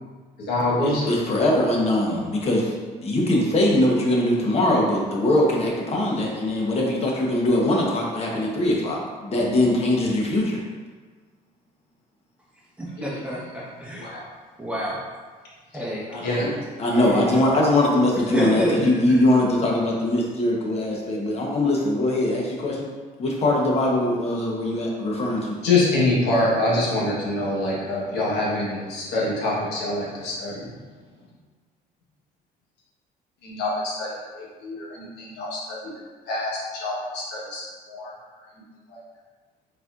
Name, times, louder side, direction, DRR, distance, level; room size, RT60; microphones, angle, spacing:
voice 1, 0.5-1.2 13.0-13.2 14.0-14.2 16.1-16.8 25.6-30.6 33.4-35.9 36.3-38.1 38.9-39.0, left 2 dB, 85° left, -6 dB, 1.3 m, -25 dB
voice 2, 1.1-2.7 3.0-10.6 16.8-22.9 23.2-25.6, left 1 dB, 40° left, -2 dB, 1.0 m, -22 dB
voice 3, 12.8-14.2 14.6-15.0 15.7-16.0 16.9-17.5 18.1-19.2, equal, 5° right, -6 dB, 1.1 m, -28 dB
4.1 x 4.1 x 2.5 m, 1.4 s
cardioid pair, 110°, 17 cm